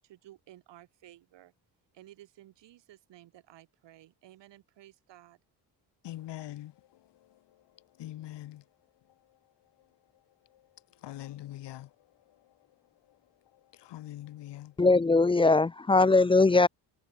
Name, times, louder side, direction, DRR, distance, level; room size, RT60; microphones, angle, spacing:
voice 1, 0.0-1.5 1.9-5.4, right 14 dB, 90° right, 6.6 m, -55 dB
voice 2, 6.0-8.6 10.5-10.6 11.0-11.9 12.3-12.5 13.1-13.2 13.5-14.7, left 14 dB, 75° left, 1.3 m, -44 dB
voice 3, 14.8-16.7, left 3 dB, 15° left, 0.3 m, -21 dB
cardioid pair, 80°, 42 cm